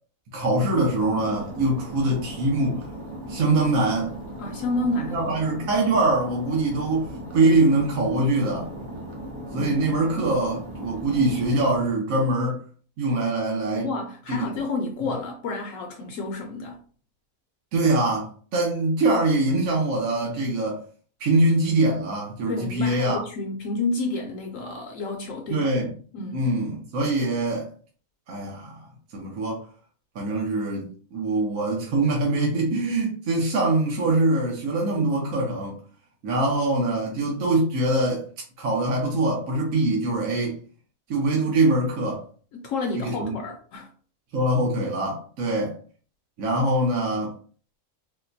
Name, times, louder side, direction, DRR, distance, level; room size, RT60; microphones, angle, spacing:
voice 1, 0.3-2.8 3.3-4.2 5.0-8.7 9.5-12.6 13.0-13.9 14.3-14.5 17.7-20.8 21.2-23.2 25.5-25.9 26.3-27.7 28.3-28.9 29.1-29.6 30.1-35.8 36.2-38.2 38.6-40.6 41.1-42.2 42.9-43.3 44.3-45.7 46.4-47.3, right 2 dB, 65° right, 1.3 m, -23 dB
sound 1, 0.6-11.8, right 1 dB, 45° right, 0.4 m, -37 dB
voice 2, 4.4-5.3 9.5-9.8 13.7-16.8 22.5-25.7 26.1-26.5 42.5-43.9, left 3 dB, 70° left, 0.9 m, -30 dB
4.2 x 2.2 x 2.6 m
omnidirectional pair, 1.6 m